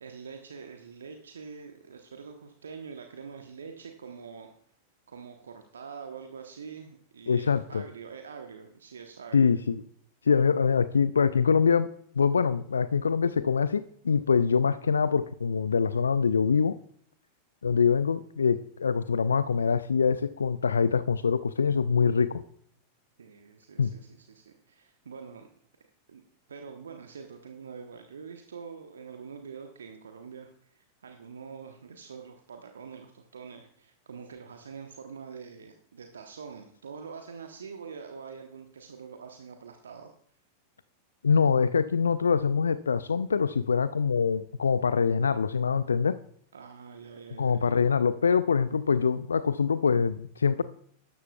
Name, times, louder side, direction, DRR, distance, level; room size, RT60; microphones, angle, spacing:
voice 1, 0.0-4.5 5.1-9.5 23.2-25.5 26.1-26.2 26.5-40.1 46.5-47.8, right 6 dB, 70° right, 4 dB, 1.0 m, -45 dB
voice 2, 7.3-7.8 9.3-9.8 10.2-16.8 17.6-22.4 23.8-23.9 41.2-46.2 47.4-50.6, left 6 dB, 70° left, 15 dB, 0.3 m, -24 dB
12.5 x 12.5 x 2.3 m, 0.64 s
figure-of-eight pair, 90°, 0 cm